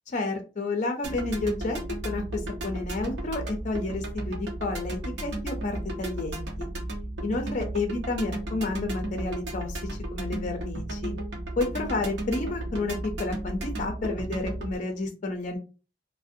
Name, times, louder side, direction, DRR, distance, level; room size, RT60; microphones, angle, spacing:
voice 1, 0.1-6.7 7.2-9.8 10.1-11.1 11.6-15.6, left 2 dB, 45° left, 5 dB, 0.4 m, -31 dB
sound 1, 1.0-14.8, right 1 dB, 80° right, 0.8 m, -34 dB
2.5 x 2.0 x 2.5 m, 0.33 s
head